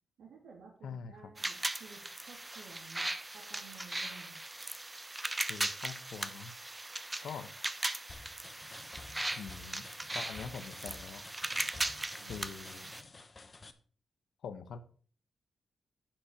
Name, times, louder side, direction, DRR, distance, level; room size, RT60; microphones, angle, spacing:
voice 1, 0.2-3.1 3.3-4.4 12.2-12.4, right 5 dB, 90° right, -3 dB, 2.6 m, -54 dB
voice 2, 0.8-1.3 5.4-6.5 7.2-7.5 9.4-9.8 10.1-11.2 12.3-12.9 14.4-14.8, left 6 dB, 85° left, 12 dB, 0.9 m, -44 dB
sound 1, 1.4-13.0, right 2 dB, 15° right, 0.9 m, -38 dB
sound 2, 8.1-13.7, left 3 dB, 30° left, 1.0 m, -52 dB
10.0 x 5.7 x 5.6 m, 0.42 s
cardioid pair, 110°, 0 cm